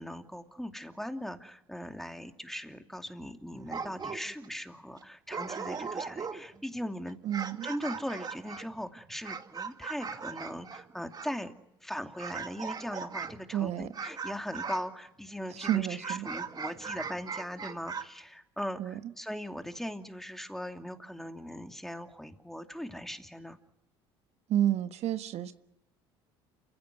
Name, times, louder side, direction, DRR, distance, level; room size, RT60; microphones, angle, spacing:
voice 1, 0.0-7.2 7.6-11.5 11.8-23.6, equal, 5° left, 6 dB, 2.7 m, -39 dB
sound 1, 3.6-4.5 5.0-5.1 5.3-6.6 7.1-11.4 12.2-13.5 13.9-14.9 15.6-18.0, right 5 dB, 30° right, 2.2 m, -39 dB
voice 2, 7.2-7.7 13.5-13.9 15.5-16.3 18.8-19.0 24.5-25.5, right 11 dB, 60° right, 9 dB, 1.4 m, -30 dB
29.0 x 16.5 x 9.5 m, 0.88 s
hypercardioid pair, 70°, 13 cm